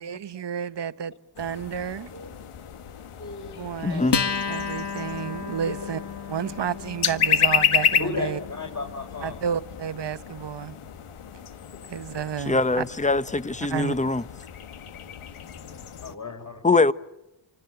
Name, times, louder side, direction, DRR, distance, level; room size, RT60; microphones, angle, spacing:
voice 1, 0.0-2.1 3.6-4.0 4.5-6.0 6.3-8.4 9.2-10.8 11.9-12.8 13.7-14.0, right 8 dB, 55° right, 1.1 m, -31 dB
sound 1, 1.4-16.2, left 7 dB, 85° left, 1.6 m, -31 dB
voice 2, 3.2-4.3 5.7-5.8 8.0-9.4 11.7-11.9 15.4-16.6, left 4 dB, 35° left, 5.8 m, -35 dB
voice 3, 3.8-4.2 12.5-14.3 16.6-16.9, left 3 dB, 15° left, 1.0 m, -22 dB
Acoustic guitar, 4.1-11.0, left 6 dB, 55° left, 1.9 m, -33 dB
28.5 x 26.0 x 7.9 m
cardioid pair, 80°, 49 cm